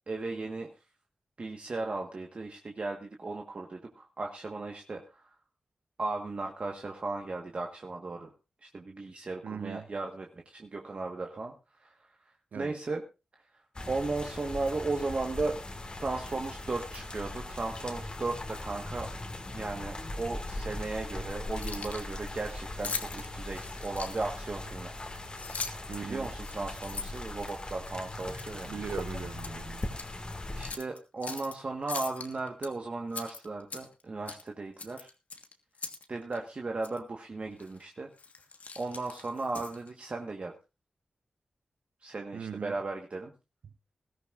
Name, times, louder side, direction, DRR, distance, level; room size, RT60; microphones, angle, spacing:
voice 1, 0.1-0.7 1.4-5.4 6.0-8.3 8.6-13.0 13.4-15.6 16.0-19.1 19.5-24.9 26.0-28.7 30.6-35.1 36.1-38.1 38.7-40.6 42.0-43.3, right 3 dB, 50° right, 1.5 m, -36 dB
voice 2, 9.4-9.9 12.5-12.8 25.9-26.3 28.7-29.9 42.3-42.8, right 7 dB, 85° right, 0.6 m, -39 dB
sound 1, 13.7-30.7, left 2 dB, 35° left, 2.1 m, -40 dB
Keys jangling, 21.4-22.1 22.8-24.4 25.2-25.9 26.4-27.9 28.4-28.6 28.9-29.6 29.9-30.1 30.6-31.5 31.9-32.7 33.1-34.0 34.3-34.5 34.8-36.1 36.3-36.4 36.8-37.0 37.6-37.8 38.2-39.9, left 4 dB, 70° left, 1.5 m, -40 dB
20.0 x 13.5 x 2.6 m
cardioid pair, 55°, 3 cm